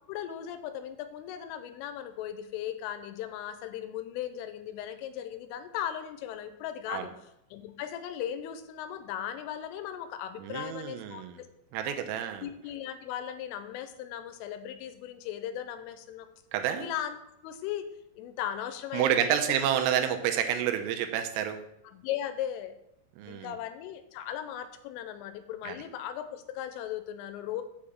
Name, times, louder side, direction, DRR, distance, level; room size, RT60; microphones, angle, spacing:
voice 1, 0.1-7.1 7.5-11.5 11.8-12.0 12.4-16.3 16.8-17.2 17.4-17.9 18.1-19.5 21.8-22.7 23.3-27.6, left 10 dB, 80° left, 10 dB, 3.1 m, -37 dB
voice 2, 10.4-11.4 11.7-12.5 16.5-16.9 18.9-21.6 23.2-23.5 25.7-25.8, right 10 dB, 85° right, 6 dB, 3.4 m, -29 dB
7.5 x 5.0 x 7.1 m, 0.80 s
omnidirectional pair, 5.9 m